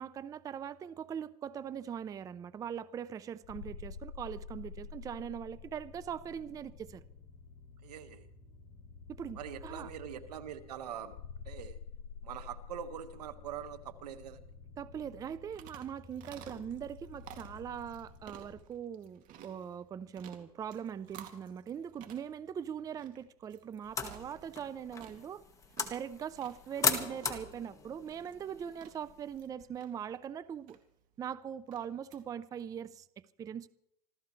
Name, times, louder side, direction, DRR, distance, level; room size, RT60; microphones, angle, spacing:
voice 1, 0.0-7.0 9.1-9.9 14.8-25.4 25.8-30.8 31.2-33.7, right 8 dB, 15° right, 16 dB, 0.5 m, -41 dB
sound 1, 3.4-18.6, left 5 dB, 55° left, 3.1 m, -50 dB
voice 2, 7.8-8.3 9.3-11.2 11.4-11.8 12.2-14.5, right 9 dB, 90° right, 10 dB, 1.5 m, -43 dB
sound 2, 15.1-32.2, right 9 dB, 40° right, 2.4 m, -56 dB
sound 3, 23.8-29.4, left 5 dB, 15° left, 1.6 m, -38 dB
26.0 x 15.0 x 3.2 m, 0.76 s
supercardioid pair, 135°, 20 cm